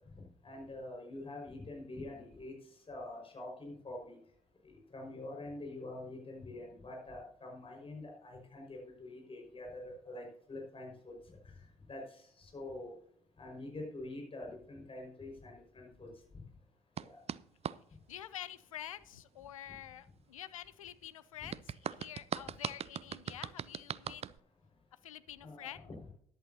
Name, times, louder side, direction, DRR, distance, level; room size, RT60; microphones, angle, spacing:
voice 1, 0.2-2.5 2.9-4.2 4.6-11.4 11.9-12.9 13.4-16.1 17.0-17.2 21.4-21.5 25.4-25.8, left 2 dB, 35° left, 0 dB, 5.4 m, -46 dB
sound 1, 17.0-17.8 21.5-24.4, right 8 dB, 40° right, 0.5 m, -40 dB
voice 2, 18.1-24.2 25.0-25.9, left 11 dB, 90° left, 15 dB, 0.4 m, -48 dB
14.5 x 11.5 x 2.8 m, 0.62 s
figure-of-eight pair, 45°, 17 cm